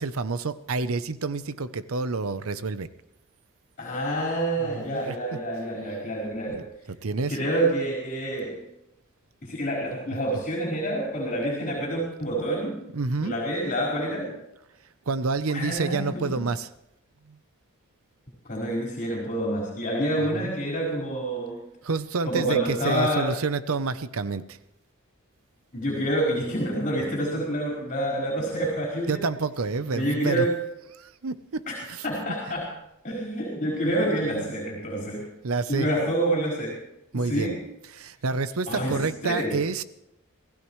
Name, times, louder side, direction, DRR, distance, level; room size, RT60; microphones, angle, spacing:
voice 1, 0.0-2.9 4.6-5.4 6.5-7.4 12.9-13.4 15.1-16.7 17.3-17.4 20.2-20.5 21.8-24.6 29.1-30.5 30.9-31.4 31.9-32.0 35.4-35.9 37.1-37.6 37.9-39.8, right 4 dB, 80° right, 13 dB, 0.7 m, -28 dB
voice 2, 3.8-6.6 7.3-8.6 9.4-12.8 13.2-14.3 15.5-16.5 18.4-21.6 22.2-23.3 25.7-29.2 29.9-30.6 31.7-31.8 32.0-32.7 33.0-35.3 35.7-36.8 37.1-37.6 38.7-39.6, right 1 dB, 40° left, -3 dB, 4.6 m, -27 dB
26.0 x 15.5 x 3.2 m, 0.85 s
head